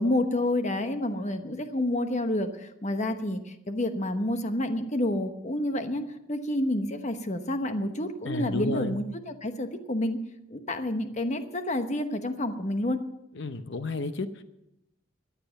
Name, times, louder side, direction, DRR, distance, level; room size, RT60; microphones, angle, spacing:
voice 1, 0.0-6.0 6.3-10.2 10.5-13.0, left 1 dB, 35° left, 8 dB, 1.0 m, -29 dB
voice 2, 8.2-9.0 13.3-14.4, left 2 dB, 60° left, 10 dB, 0.8 m, -32 dB
14.5 x 9.6 x 7.1 m, 0.85 s
head